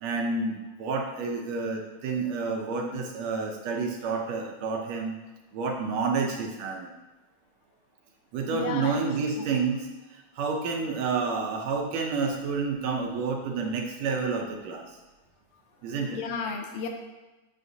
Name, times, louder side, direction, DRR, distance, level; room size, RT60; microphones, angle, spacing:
voice 1, 0.0-5.2 5.5-6.9 8.3-15.0 15.8-16.2, right 4 dB, 75° right, 1 dB, 1.7 m, -29 dB
voice 2, 8.5-9.0 9.4-9.5 16.1-16.9, left 5 dB, 80° left, 3 dB, 2.0 m, -33 dB
7.7 x 6.5 x 2.7 m, 1.1 s
omnidirectional pair, 3.4 m